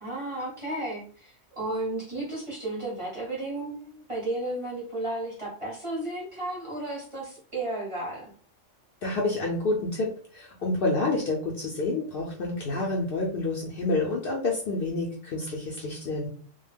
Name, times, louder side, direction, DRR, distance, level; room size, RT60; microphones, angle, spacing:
voice 1, 0.0-8.3, right 2 dB, 30° right, -5 dB, 0.7 m, -33 dB
voice 2, 9.0-16.3, left 2 dB, 60° left, -2 dB, 0.6 m, -28 dB
2.2 x 2.0 x 3.3 m, 0.44 s
omnidirectional pair, 1.3 m